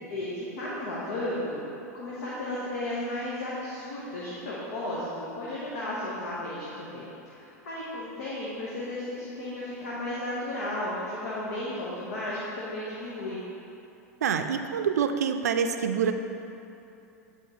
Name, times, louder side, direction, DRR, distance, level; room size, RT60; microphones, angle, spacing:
voice 1, 0.1-1.6 1.9-7.0 7.3-13.4, left 1 dB, 70° left, -7 dB, 1.2 m, -34 dB
voice 2, 14.2-16.1, right 7 dB, 80° right, 7 dB, 0.4 m, -26 dB
9.9 x 4.2 x 3.1 m, 2.8 s
hypercardioid pair, 90°, 9 cm